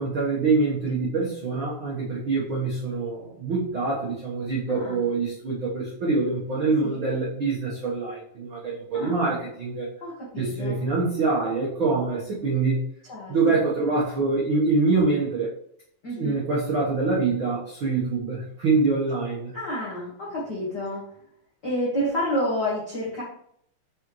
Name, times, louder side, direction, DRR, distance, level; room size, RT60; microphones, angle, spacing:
voice 1, 0.0-9.9 10.4-12.8 13.3-15.5 16.2-19.5, right 3 dB, 85° right, -5 dB, 1.1 m, -25 dB
voice 2, 4.7-5.1 6.8-7.0 8.9-9.2 10.0-10.8 13.1-13.6 16.0-16.4 19.5-21.0 21.6-23.2, equal, 70° left, -6 dB, 0.9 m, -29 dB
6.5 x 5.0 x 3.1 m, 0.69 s
omnidirectional pair, 4.2 m